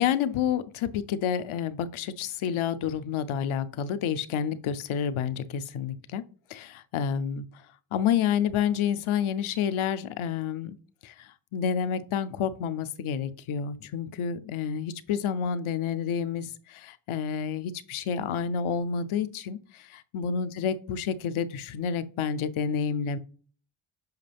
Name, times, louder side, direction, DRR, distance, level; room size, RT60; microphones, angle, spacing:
voice 1, 0.0-6.2 6.5-7.4 7.9-10.8 11.0-23.2, left 8 dB, 75° left, 0.8 m, -29 dB
8.1 x 5.2 x 3.5 m
cardioid pair, 90°, 50 cm